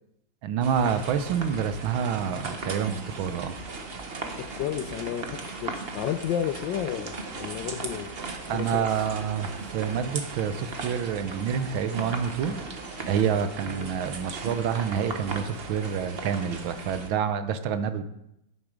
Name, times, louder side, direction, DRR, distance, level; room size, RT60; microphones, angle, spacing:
voice 1, 0.4-3.5 8.5-12.5 13.1-18.0, right 7 dB, 70° right, 10 dB, 1.4 m, -28 dB
sound 1, 0.6-17.1, right 3 dB, 40° right, 0.9 m, -37 dB
voice 2, 4.4-8.2 8.5-8.9 13.8-13.9, left 10 dB, 75° left, 9 dB, 1.1 m, -32 dB
9.6 x 9.4 x 5.0 m, 0.82 s
omnidirectional pair, 2.4 m